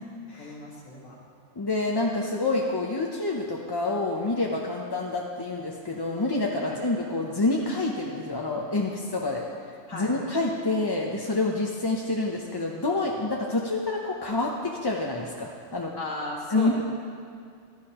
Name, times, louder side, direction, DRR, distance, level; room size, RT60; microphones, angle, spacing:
voice 1, 0.4-1.2 6.6-6.8 9.9-10.1 16.0-16.8, left 1 dB, 90° left, -3 dB, 2.2 m, -36 dB
voice 2, 1.6-9.4 9.9-15.9 16.5-16.8, left 2 dB, 25° left, -1 dB, 0.5 m, -27 dB
15.0 x 12.0 x 2.9 m, 2.3 s
omnidirectional pair, 1.2 m